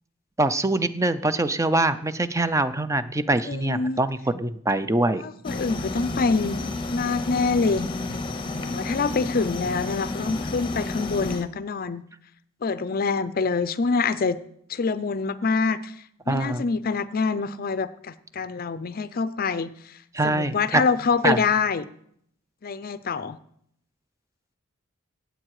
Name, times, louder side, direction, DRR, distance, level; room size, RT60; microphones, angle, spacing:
voice 1, 0.4-5.2 16.3-16.6 20.1-20.8 21.2-21.4, right 2 dB, 15° right, 13 dB, 0.5 m, -23 dB
voice 2, 3.4-4.0 5.2-7.9 8.6-12.0 12.6-14.4 14.7-15.9 16.3-19.9 20.2-21.9 22.6-23.4, left 4 dB, 45° left, 15 dB, 0.5 m, -26 dB
sound 1, 5.4-11.4, left 2 dB, 25° left, 0.8 m, -31 dB
16.5 x 8.1 x 4.8 m, 0.69 s
head